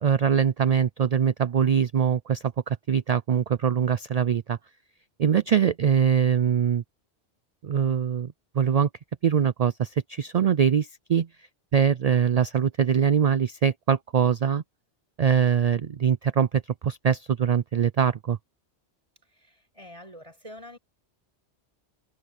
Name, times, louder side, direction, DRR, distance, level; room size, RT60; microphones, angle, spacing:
voice 1, 0.0-4.6 5.2-6.8 7.6-8.9 9.2-11.3 11.7-14.6 15.2-18.4, right 8 dB, 60° right, 0.4 m, -23 dB
voice 2, 19.3-20.8, left 1 dB, 30° right, 5.6 m, -46 dB
omnidirectional pair, 1.2 m